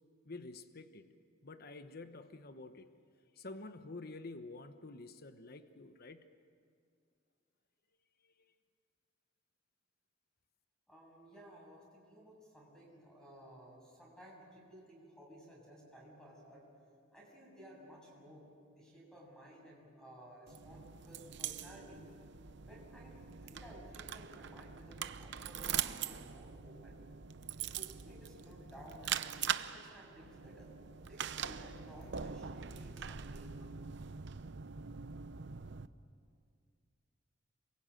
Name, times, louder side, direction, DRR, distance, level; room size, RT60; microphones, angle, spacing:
voice 1, 0.3-1.1 1.4-2.9 3.4-6.2, left 3 dB, 50° left, 9 dB, 1.1 m, -49 dB
voice 2, 10.9-16.7 17.1-22.1 22.7-27.0 27.6-29.3 29.6-30.7 31.0-33.6, equal, 5° left, -2 dB, 7.7 m, -56 dB
sound 1, 20.5-35.9, right 8 dB, 65° right, 0.8 m, -42 dB
27.0 x 22.5 x 9.1 m, 2.3 s
head